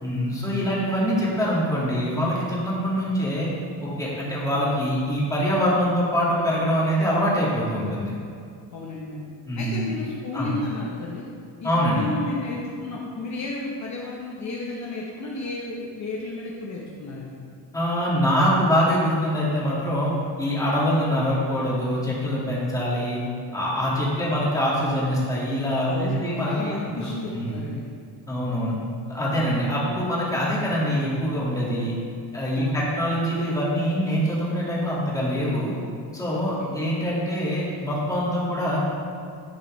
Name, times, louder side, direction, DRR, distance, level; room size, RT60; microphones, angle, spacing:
voice 1, 0.0-3.5 3.8-8.1 9.5-9.9 10.3-10.5 11.6-12.0 17.7-23.2 23.5-26.7 27.0-27.6 28.3-28.7 29.1-32.0 32.3-35.7 36.1-38.8, equal, 10° left, -7 dB, 1.9 m, -24 dB
voice 2, 8.7-9.3 9.6-11.3 11.6-17.4 25.8-27.8 32.5-33.0 36.4-36.8, left 2 dB, 40° left, -4 dB, 0.9 m, -33 dB
10.5 x 6.7 x 3.2 m, 2.4 s
cardioid pair, 160°, 42 cm